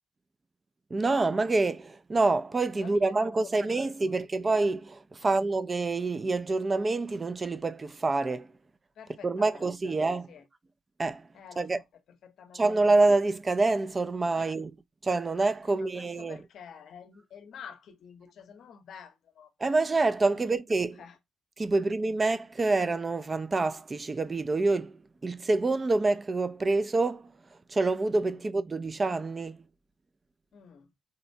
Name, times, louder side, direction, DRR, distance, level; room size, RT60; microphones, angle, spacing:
voice 1, 0.9-8.5 9.2-10.3 11.0-11.2 11.6-11.8 12.5-14.7 15.0-16.4 19.6-20.9 21.6-27.3 27.7-29.6, right 3 dB, 30° right, 0.3 m, -27 dB
voice 2, 2.8-4.3 5.2-5.4 9.0-10.4 11.3-12.6 14.4-14.5 15.6-19.5 20.3-20.6 21.0-21.2 28.3-28.5 30.5-30.9, left 7 dB, 65° left, 0.7 m, -49 dB
3.9 x 2.1 x 2.6 m
cardioid pair, 90°, 0 cm